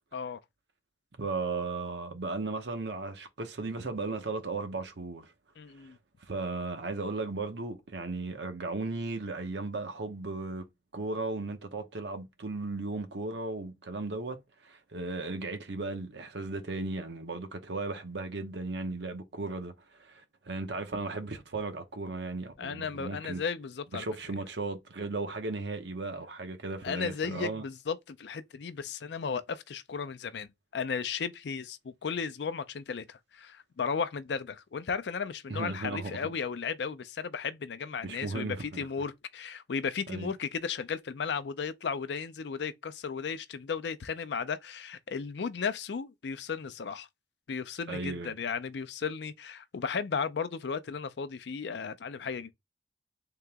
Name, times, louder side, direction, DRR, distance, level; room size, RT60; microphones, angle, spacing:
voice 1, 1.2-5.3 5.8-5.9 6.2-10.7 10.9-23.4 23.9-27.6 35.5-36.3 38.0-38.9 40.1-40.3 47.9-48.3, right 3 dB, 75° right, 0.9 m, -36 dB
voice 2, 5.6-6.0 22.6-24.1 26.8-30.5 30.7-47.1 47.5-52.5, left 6 dB, 70° left, 0.5 m, -35 dB
3.7 x 2.9 x 3.4 m
head